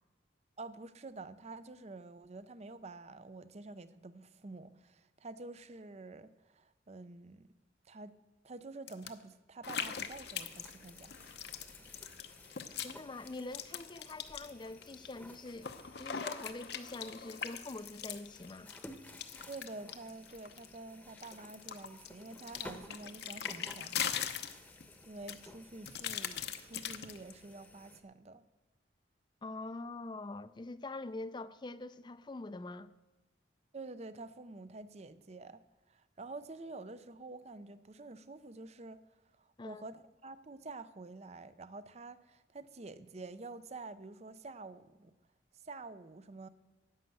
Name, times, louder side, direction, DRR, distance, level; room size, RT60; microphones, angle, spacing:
voice 1, 0.6-7.5 7.9-8.2 8.4-11.2 11.8-11.9 19.5-24.2 25.1-28.4 33.7-35.6 35.9-39.0 39.6-45.1 45.6-46.5, right 3 dB, 35° right, 0.6 m, -48 dB
sound 1, 8.9-9.1 9.6-13.0 13.3-15.1 15.5-20.8 21.2-24.9 25.3-27.3, left 8 dB, 60° left, 0.8 m, -41 dB
sound 2, 9.6-28.0, left 1 dB, 10° left, 1.0 m, -55 dB
voice 2, 12.8-18.7 29.4-32.9 39.6-39.9, left 2 dB, 25° left, 0.5 m, -44 dB
11.0 x 9.1 x 7.8 m
head